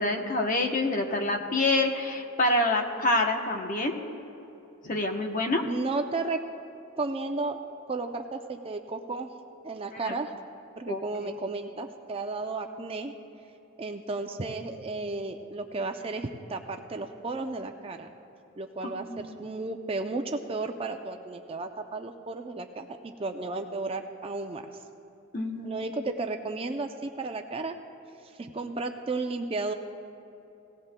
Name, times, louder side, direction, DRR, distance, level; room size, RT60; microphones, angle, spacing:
voice 1, 0.0-4.0 4.8-5.6 10.0-10.1 10.9-11.3 18.8-19.2 25.3-25.8, left 2 dB, 35° left, 3 dB, 0.8 m, -27 dB
voice 2, 5.6-6.4 7.0-7.6 7.9-9.3 9.6-10.3 10.8-13.1 13.8-18.1 18.6-24.8 25.6-27.8 28.2-29.7, right 3 dB, 25° right, 5 dB, 0.4 m, -33 dB
17.5 x 17.0 x 2.2 m, 2.8 s
head